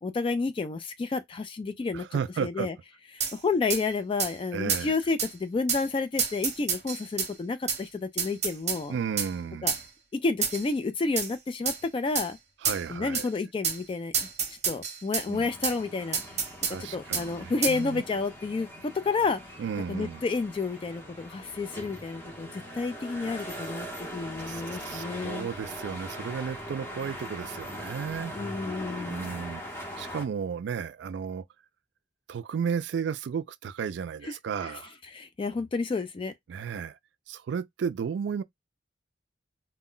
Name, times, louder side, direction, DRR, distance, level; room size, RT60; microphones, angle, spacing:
voice 1, 0.0-2.0 2.4-2.7 3.1-9.0 9.6-9.7 10.1-12.4 12.9-14.1 14.7-16.5 16.8-18.7 18.9-19.4 19.9-25.5 28.3-29.2 34.2-34.3 34.6-34.8 35.1-36.3, left 4 dB, 30° left, 0.3 m, -30 dB
voice 2, 1.9-2.7 4.5-4.9 8.9-9.8 12.6-13.3 15.3-15.5 16.7-18.0 19.6-20.2 24.5-28.3 29.1-29.6 30.0-31.4 32.3-34.9 36.5-36.9 37.3-38.4, right 7 dB, 70° right, 0.3 m, -33 dB
sound 1, 3.2-3.3 3.7-3.8 4.2-4.3 4.7-4.9 5.2-5.3 5.7-5.8 6.2-7.3 7.7-7.8 8.2-8.8 9.2-9.3 9.7-9.8 10.4-10.7 11.2-11.3 11.7-11.8 12.1-12.3 12.6-12.8 13.1-13.3 13.6-13.8 14.1-15.3 15.6-15.8 16.1-16.8 17.1-17.3 17.6-17.8, right 6 dB, 40° right, 0.8 m, -29 dB
sound 2, 15.3-30.2, equal, 15° left, 0.8 m, -41 dB
2.1 x 2.1 x 3.7 m
head